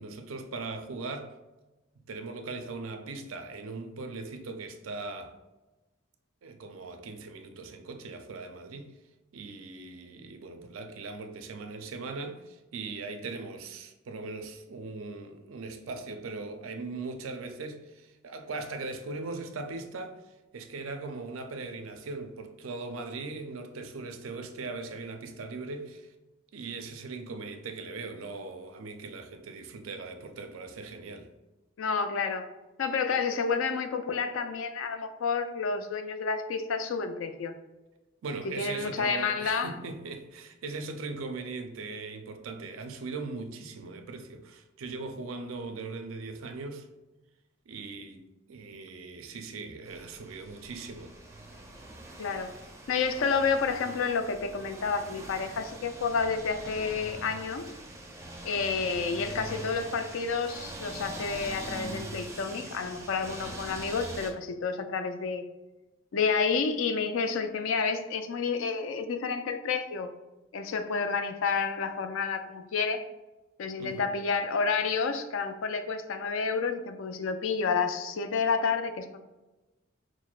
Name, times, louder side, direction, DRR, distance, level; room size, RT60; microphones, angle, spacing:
voice 1, 0.0-1.3 2.1-5.3 6.4-8.9 9.3-20.2 20.5-26.1 26.5-31.3 38.2-46.9 47.7-51.2 73.8-74.1, right 3 dB, 85° right, 0.4 m, -39 dB
voice 2, 31.8-32.5 32.8-37.6 38.6-39.7 52.2-52.5 52.9-57.7 58.4-65.4 66.1-70.1 70.5-73.0 73.6-79.2, left 5 dB, 75° left, 0.4 m, -30 dB
sound 1, 49.9-64.3, right 2 dB, 15° right, 0.4 m, -43 dB
6.1 x 2.0 x 2.3 m
head